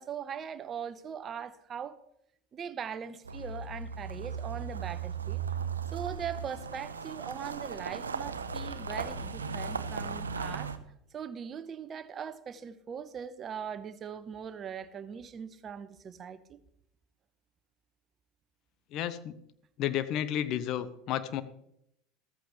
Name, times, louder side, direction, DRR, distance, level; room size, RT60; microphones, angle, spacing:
voice 1, 0.0-2.0 2.5-5.4 5.9-10.7 11.1-16.6, right 7 dB, 35° right, 1.0 m, -40 dB
sound 1, 3.3-10.8, right 5 dB, 90° right, 0.8 m, -37 dB
voice 2, 18.9-19.4 19.8-21.4, left 11 dB, 50° left, 1.0 m, -32 dB
14.0 x 14.0 x 3.3 m
hypercardioid pair, 80°, 0 cm